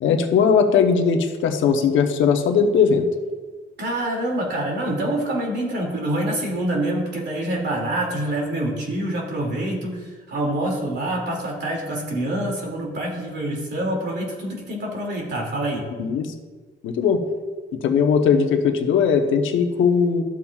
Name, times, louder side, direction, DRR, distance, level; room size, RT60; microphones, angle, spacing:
voice 1, 0.0-3.1 16.0-16.3 16.8-17.2 17.8-20.2, left 6 dB, 75° left, 5 dB, 0.9 m, -19 dB
voice 2, 3.8-15.9, right 1 dB, 60° right, -1 dB, 2.5 m, -26 dB
12.5 x 7.2 x 2.4 m, 1.4 s
cardioid pair, 90°, 20 cm